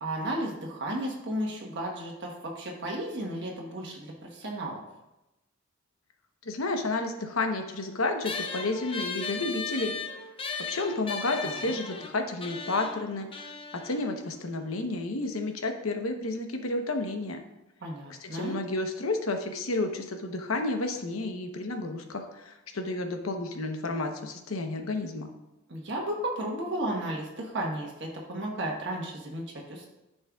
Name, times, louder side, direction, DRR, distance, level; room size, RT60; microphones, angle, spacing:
voice 1, 0.0-4.8 11.4-11.8 17.8-18.6 25.7-29.9, right 1 dB, 55° right, -1 dB, 1.2 m, -34 dB
voice 2, 6.4-9.9 10.7-13.3 13.7-17.4 18.2-25.3, left 2 dB, 75° left, 4 dB, 0.9 m, -31 dB
sound 1, 8.2-15.0, left 4 dB, 25° left, 0.6 m, -37 dB
13.0 x 5.4 x 2.3 m, 0.96 s
head